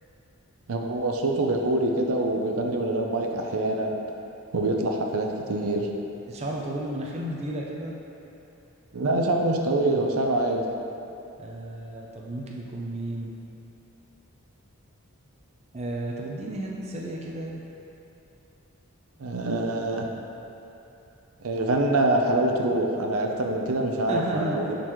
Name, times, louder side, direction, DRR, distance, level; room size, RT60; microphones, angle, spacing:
voice 1, 0.7-4.0 4.5-5.9 8.9-10.7 19.2-20.1 21.4-24.7, right 2 dB, 75° right, 2 dB, 0.6 m, -25 dB
voice 2, 6.3-7.9 11.4-13.3 15.7-17.6 24.1-24.6, right 1 dB, 30° right, -2 dB, 0.5 m, -33 dB
11.0 x 3.9 x 3.1 m, 2.9 s
head